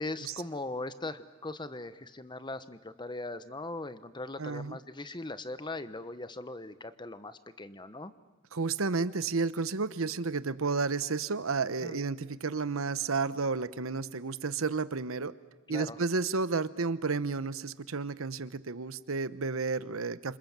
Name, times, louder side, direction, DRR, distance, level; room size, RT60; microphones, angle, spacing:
voice 1, 0.0-8.1 11.8-12.0 15.7-16.0, left 2 dB, 20° left, 13 dB, 1.1 m, -40 dB
voice 2, 4.4-4.8 8.5-15.3 15.7-20.4, right 4 dB, 90° right, 15 dB, 1.0 m, -31 dB
29.0 x 27.0 x 7.5 m, 1.2 s
head